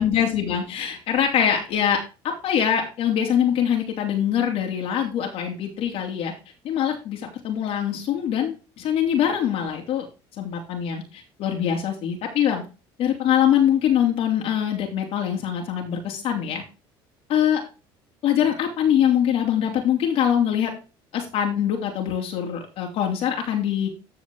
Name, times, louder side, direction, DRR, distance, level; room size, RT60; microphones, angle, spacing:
voice 1, 0.0-2.0 2.4-6.3 6.6-10.0 10.4-12.6 13.0-16.6 17.3-17.6 18.2-20.8 21.1-23.9, left 9 dB, 60° left, 1 dB, 3.2 m, -23 dB
14.0 x 5.1 x 3.8 m, 0.30 s
supercardioid pair, 100°, 11 cm